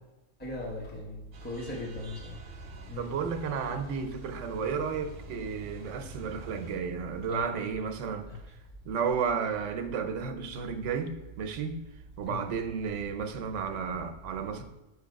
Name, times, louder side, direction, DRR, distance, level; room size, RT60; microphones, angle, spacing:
voice 1, 0.4-2.3 2.9-3.1 3.5-3.6 6.0-6.1 7.3-7.5 8.3-8.4 12.2-12.4, left 2 dB, 10° left, -2 dB, 0.9 m, -38 dB
sound 1, 1.3-6.8, right 4 dB, 60° right, 0.8 m, -47 dB
voice 2, 3.0-8.3 8.8-11.8 12.2-14.6, right 6 dB, 85° right, 7 dB, 1.0 m, -32 dB
6.5 x 3.0 x 5.1 m, 1.0 s
omnidirectional pair, 1.2 m